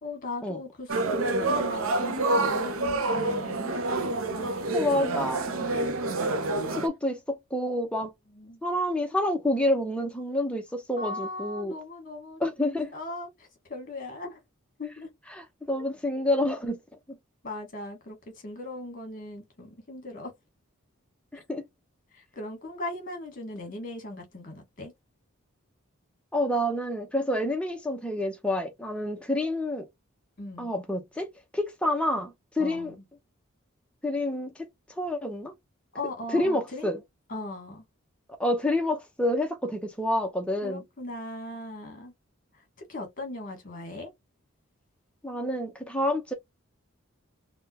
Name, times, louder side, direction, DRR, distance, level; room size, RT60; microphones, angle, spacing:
voice 1, 0.0-3.8 4.3-4.7 5.0-5.9 8.0-8.6 11.0-12.4 12.9-14.4 14.8-15.1 17.4-18.2 18.4-20.3 22.1-24.9 30.4-30.7 32.6-33.0 35.9-37.0 37.3-37.8 40.6-42.1 42.6-42.7 42.9-44.1, left 2 dB, 40° left, 1.4 m, -39 dB
sound 1, 0.9-6.9, right 2 dB, 75° right, 0.6 m, -27 dB
voice 2, 4.7-5.5 6.8-8.1 8.6-11.7 12.4-12.9 15.3-16.8 17.1-17.2 21.3-21.6 26.3-29.9 30.6-32.9 34.0-34.5 35.0-35.5 36.3-37.0 38.4-40.8 45.2-46.3, left 1 dB, 5° left, 0.6 m, -28 dB
3.6 x 2.2 x 2.7 m
head